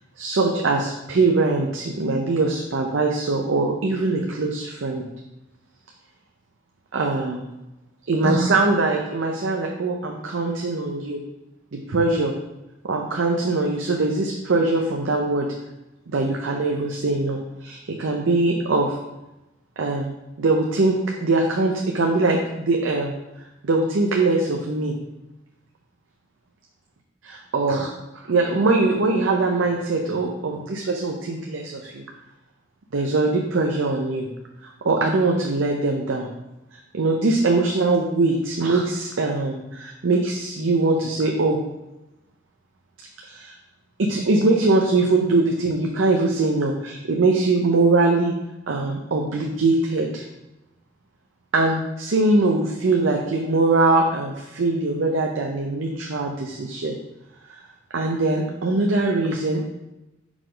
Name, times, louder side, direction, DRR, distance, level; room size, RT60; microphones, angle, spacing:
voice 1, 0.2-5.0 6.9-7.4 8.1-11.2 11.7-12.3 12.9-15.5 16.1-19.0 19.8-20.1 20.4-23.1 23.6-24.9 27.5-27.9 28.1-32.0 32.9-34.3 34.6-36.3 36.7-41.6 43.2-43.5 44.0-48.3 48.7-50.2 51.5-57.0 57.9-59.7, right 3 dB, 75° right, 1 dB, 0.6 m, -22 dB
5.1 x 4.8 x 3.9 m, 0.96 s
head